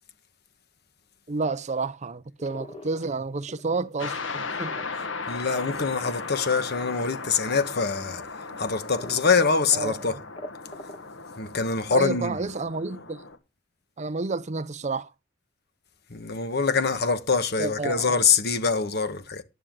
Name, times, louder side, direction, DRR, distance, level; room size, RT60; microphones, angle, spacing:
voice 1, 1.3-4.7 9.7-10.2 11.9-13.2 14.0-15.1 17.6-18.1, right 3 dB, 35° right, 0.6 m, -30 dB
sound 1, 2.4-3.8 4.2-6.4 7.2-7.7 8.2-8.3 9.0-9.4 9.7-9.8 10.1-11.2, left 1 dB, 30° left, 2.5 m, -43 dB
sound 2, 4.0-13.4, left 4 dB, 75° left, 1.5 m, -37 dB
voice 2, 5.3-8.2 8.6-10.1 11.4-12.4 16.1-19.4, left 5 dB, 55° left, 1.2 m, -24 dB
11.0 x 9.5 x 3.7 m
head